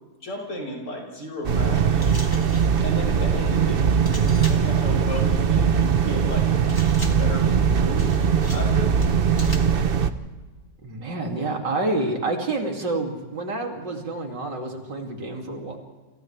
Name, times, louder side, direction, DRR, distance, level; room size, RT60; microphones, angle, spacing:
voice 1, 0.2-2.2 2.8-6.5 7.1-8.1 8.5-9.0, left 1 dB, 75° left, 0 dB, 6.4 m, -34 dB
sound 1, 1.4-10.1, right 7 dB, 45° right, 0.8 m, -20 dB
sound 2, 2.0-2.8 4.0-4.7 6.7-7.4 8.0-8.7 9.0-9.8, left 1 dB, 10° left, 1.7 m, -40 dB
voice 2, 10.8-15.8, right 2 dB, 75° right, 1 dB, 3.4 m, -28 dB
29.5 x 27.5 x 3.4 m, 1.3 s
omnidirectional pair, 1.9 m